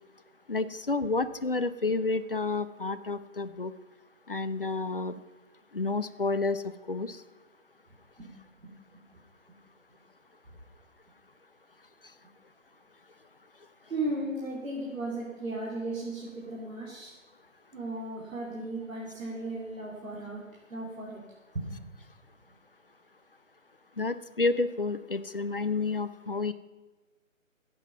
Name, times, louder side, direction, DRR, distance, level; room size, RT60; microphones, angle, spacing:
voice 1, 0.5-3.7 4.3-5.2 5.7-7.2 24.0-26.5, left 3 dB, 45° left, 13 dB, 0.6 m, -30 dB
voice 2, 13.9-17.1 17.7-20.4 20.7-21.2 21.5-21.8, right 2 dB, 75° right, -3 dB, 3.1 m, -36 dB
16.5 x 8.2 x 5.8 m, 1.3 s
figure-of-eight pair, 170°, 40 cm